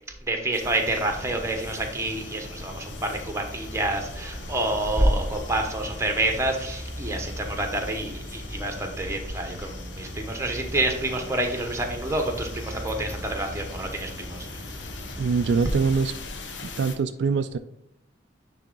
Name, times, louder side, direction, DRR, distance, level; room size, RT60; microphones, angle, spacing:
voice 1, 0.2-14.6, right 1 dB, 15° right, 3 dB, 1.0 m, -28 dB
sound 1, 0.5-17.0, left 3 dB, 85° left, 0.9 m, -42 dB
sound 2, 1.0-16.0, equal, 20° left, 2.9 m, -39 dB
voice 2, 15.2-16.1 16.6-17.6, right 5 dB, 70° right, 10 dB, 0.3 m, -24 dB
9.7 x 3.5 x 3.9 m, 0.78 s
head